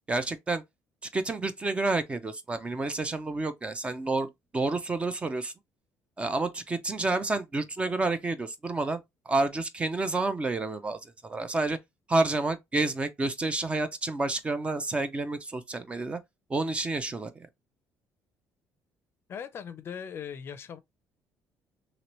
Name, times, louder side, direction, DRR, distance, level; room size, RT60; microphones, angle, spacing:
voice 1, 0.1-0.6 1.1-5.5 6.2-11.8 12.1-16.2 16.5-17.5, right 2 dB, 20° right, 0.4 m, -29 dB
voice 2, 19.3-20.8, left 7 dB, 40° left, 0.5 m, -39 dB
2.9 x 2.9 x 3.0 m
cardioid pair, 130°, 6 cm